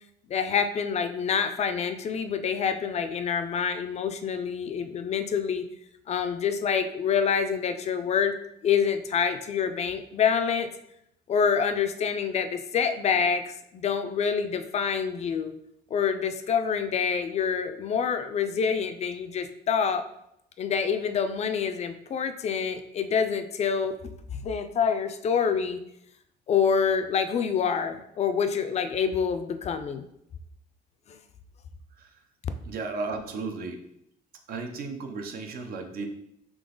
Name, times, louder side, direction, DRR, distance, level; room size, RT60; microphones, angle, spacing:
voice 1, 0.3-5.6 6.1-8.4 8.6-10.7 11.3-15.5 15.9-20.1 20.6-23.9 24.4-25.8 26.5-30.0 31.1-31.2, left 6 dB, 40° left, 9 dB, 0.4 m, -26 dB
voice 2, 32.6-33.8 34.5-36.1, right 4 dB, 60° right, 5 dB, 0.7 m, -34 dB
3.8 x 2.9 x 3.8 m, 0.77 s
cardioid pair, 110°, 17 cm